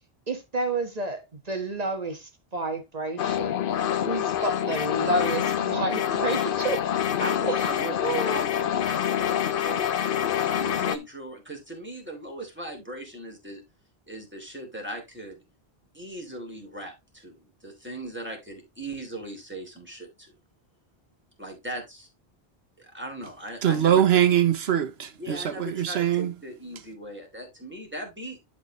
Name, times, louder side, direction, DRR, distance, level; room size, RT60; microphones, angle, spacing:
voice 1, 0.3-3.6 4.0-6.8 7.5-7.7 8.0-8.4, right 2 dB, 40° right, 1.5 m, -30 dB
sound 1, 3.2-11.0, left 10 dB, 65° left, 0.8 m, -26 dB
voice 2, 7.2-9.9 10.4-13.6 14.1-15.4 15.9-20.3 21.4-22.1 22.8-24.0 25.2-28.4, right 1 dB, 10° right, 2.9 m, -39 dB
voice 3, 23.6-26.3, right 10 dB, 85° right, 1.1 m, -22 dB
11.5 x 4.3 x 3.0 m
omnidirectional pair, 1.0 m